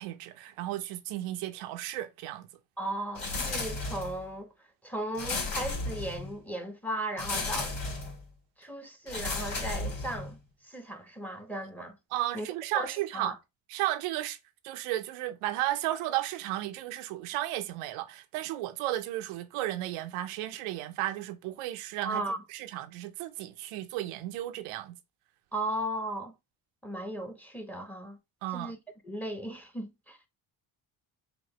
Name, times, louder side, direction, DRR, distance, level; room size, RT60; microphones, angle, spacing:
voice 1, 0.0-2.5 12.1-13.3 13.7-14.4 14.6-22.2 22.5-25.0 28.4-28.7, right 14 dB, 90° right, 0.7 m, -34 dB
voice 2, 2.8-4.5 4.8-7.7 8.6-10.4 10.6-11.9 12.3-12.5 12.7-12.9 13.1-13.4 22.0-22.4 25.5-26.3 26.8-28.2 28.5-28.8 29.0-30.2, right 1 dB, 5° left, 1.1 m, -36 dB
sound 1, 3.1-4.3 5.1-6.4 7.2-8.2 9.1-10.4, left 3 dB, 70° left, 2.1 m, -34 dB
4.9 x 2.6 x 2.9 m
supercardioid pair, 65°, 50 cm